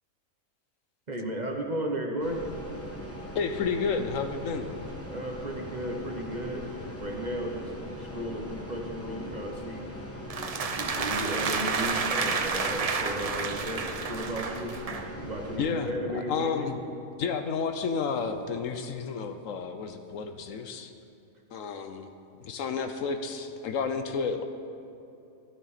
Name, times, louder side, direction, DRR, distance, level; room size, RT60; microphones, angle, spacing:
voice 1, 1.1-2.4 5.1-9.9 10.3-14.8 15.1-16.7 21.7-21.8, right 1 dB, 35° right, 1 dB, 1.0 m, -35 dB
sound 1, 2.2-15.6, left 1 dB, 10° left, 1.1 m, -41 dB
voice 2, 3.3-4.7 15.6-16.8 17.2-20.9 21.5-22.1 22.4-24.4, left 5 dB, 70° left, 7 dB, 1.0 m, -31 dB
sound 2, 10.3-15.1, right 4 dB, 65° right, 0.3 m, -30 dB
13.0 x 12.0 x 4.1 m, 2.8 s
omnidirectional pair, 1.5 m